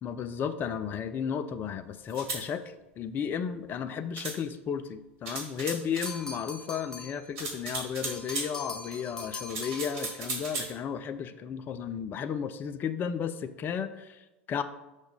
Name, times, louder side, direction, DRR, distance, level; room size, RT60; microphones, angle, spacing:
voice 1, 0.0-14.6, left 7 dB, 30° left, 11 dB, 0.4 m, -34 dB
sound 1, 2.1-2.4 4.1-4.4 5.2-6.1 7.3-8.5 9.4-10.7, right 3 dB, 45° right, 2.1 m, -36 dB
sound 2, 6.1-7.3 8.0-10.2, left 3 dB, 10° left, 0.8 m, -42 dB
5.7 x 3.2 x 5.4 m, 1.0 s
figure-of-eight pair, 80°, 7 cm